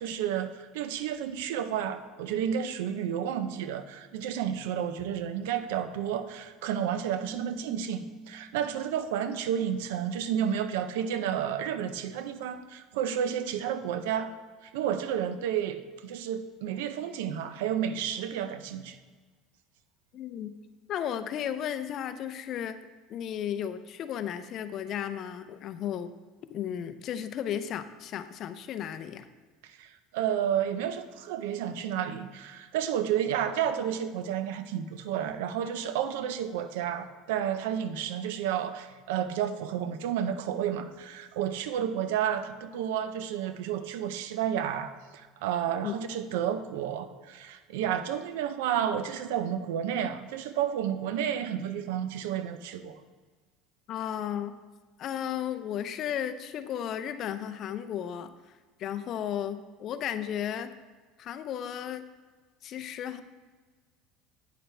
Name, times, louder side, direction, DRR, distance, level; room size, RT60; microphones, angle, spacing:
voice 1, 0.0-14.3 14.6-19.0 29.6-53.0, right 9 dB, 85° right, 11 dB, 0.6 m, -31 dB
Keyboard (musical), 7.0-9.0, right 3 dB, ahead, 0.5 m, -48 dB
voice 2, 20.1-20.5 20.9-22.8 23.1-26.1 26.5-29.3 45.8-45.9 53.9-54.5 55.0-58.3 58.8-60.7 61.2-62.0 62.6-63.2, left 9 dB, 45° left, 10 dB, 0.5 m, -34 dB
9.2 x 6.6 x 3.3 m, 1.4 s
supercardioid pair, 120°, 0 cm